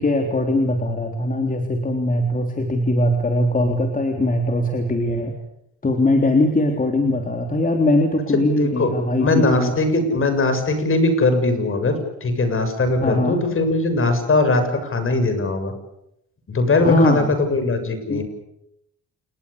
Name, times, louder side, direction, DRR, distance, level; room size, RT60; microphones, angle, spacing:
voice 1, 0.0-5.3 5.8-9.7 13.0-13.4 16.8-17.3 18.1-18.2, left 1 dB, 25° left, 4 dB, 3.6 m, -20 dB
voice 2, 8.6-8.9 9.2-12.0 12.2-15.7 16.5-18.2, left 2 dB, 45° left, 8 dB, 7.1 m, -20 dB
28.5 x 20.5 x 8.5 m, 0.79 s
cardioid pair, 90°, 30 cm